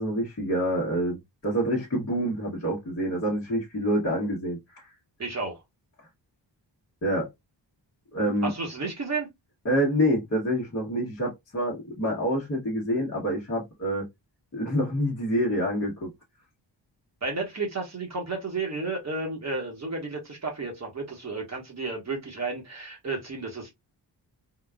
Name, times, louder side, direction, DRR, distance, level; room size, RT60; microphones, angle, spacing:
voice 1, 0.0-4.9 7.0-7.3 8.1-8.5 9.6-14.1 14.5-16.1, equal, 35° left, 1.0 m, -27 dB
voice 2, 5.2-5.6 8.4-9.3 17.2-23.7, right 3 dB, 35° right, 1.1 m, -32 dB
3.8 x 2.3 x 2.2 m
wide cardioid pair, 125°, 44 cm